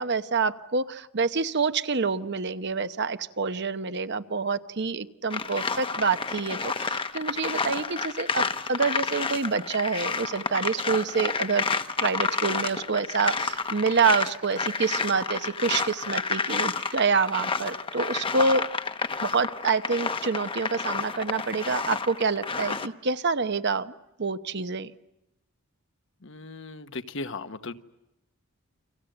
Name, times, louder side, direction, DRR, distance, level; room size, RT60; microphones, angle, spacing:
voice 1, 0.0-11.6 12.0-18.6 19.2-23.9 24.2-24.9, right 4 dB, 50° right, 11 dB, 0.9 m, -27 dB
sound 1, 5.3-22.9, left 4 dB, 25° left, 0.9 m, -30 dB
voice 2, 26.2-27.8, left 3 dB, 60° left, 10 dB, 1.2 m, -37 dB
30.0 x 25.5 x 8.0 m, 0.90 s
head